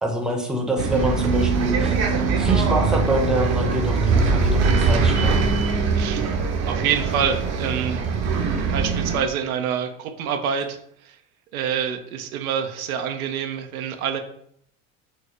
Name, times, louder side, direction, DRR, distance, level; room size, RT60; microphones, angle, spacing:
voice 1, 0.0-1.9 2.4-5.5, right 1 dB, ahead, 1 dB, 0.7 m, -25 dB
Bus, 0.8-9.2, right 4 dB, 40° right, 0.6 m, -22 dB
voice 2, 5.9-6.3 6.6-8.0 8.7-10.8 11.0-11.1 11.5-14.2, right 7 dB, 85° right, 6 dB, 0.5 m, -26 dB
4.2 x 2.0 x 3.0 m, 0.70 s
hypercardioid pair, 75°, 42 cm